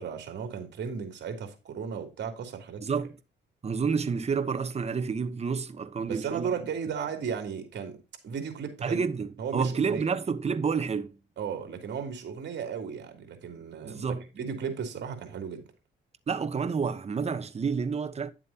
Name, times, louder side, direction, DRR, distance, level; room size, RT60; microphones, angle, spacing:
voice 1, 0.0-2.8 6.1-8.0 8.2-9.0 9.4-10.0 11.4-15.6, right 6 dB, 60° right, 3.1 m, -35 dB
voice 2, 2.8-3.1 3.6-6.5 8.8-11.2 13.8-14.2 16.3-18.3, right 5 dB, 30° right, 1.0 m, -29 dB
10.5 x 7.5 x 2.9 m
cardioid pair, 90°, 20 cm